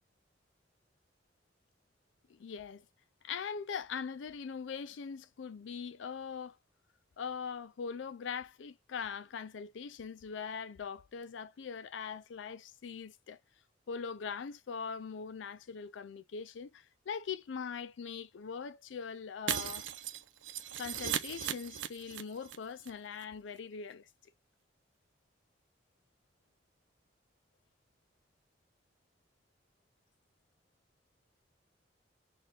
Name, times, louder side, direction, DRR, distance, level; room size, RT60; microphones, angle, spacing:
voice 1, 2.3-2.8 3.2-6.6 7.2-13.4 13.9-19.9 20.8-24.1, left 6 dB, 85° left, 0.4 m, -41 dB
Shatter, 19.5-22.6 22.8-22.9 23.2-23.3, right 9 dB, 90° right, 0.7 m, -37 dB
4.2 x 2.5 x 3.5 m
head